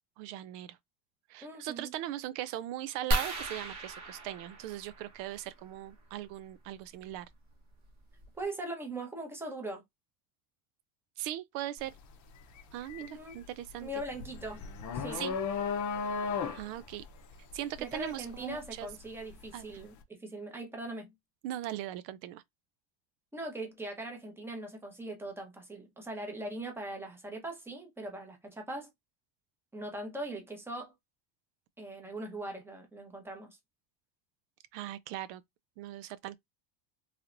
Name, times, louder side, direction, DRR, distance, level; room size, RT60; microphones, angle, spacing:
voice 1, 0.2-0.8 1.3-7.3 11.2-11.9 12.7-13.9 15.1-15.4 16.5-17.0 17.5-18.9 19.5-19.7 21.4-22.4 34.7-35.4 35.8-36.4, right 13 dB, 85° right, 0.5 m, -39 dB
voice 2, 1.4-1.9 8.4-9.8 13.0-13.4 13.8-14.6 14.9-15.2 17.8-21.1 23.3-28.9 29.7-30.9 31.8-33.5, right 1 dB, 5° right, 0.8 m, -40 dB
sound 1, 3.1-5.5 7.1-7.3 7.8-7.9 8.2-8.4, right 1 dB, 35° right, 1.0 m, -35 dB
sound 2, 11.8-12.0 12.4-19.4, left 5 dB, 40° left, 0.7 m, -36 dB
3.3 x 2.7 x 2.5 m
cardioid pair, 135°, 48 cm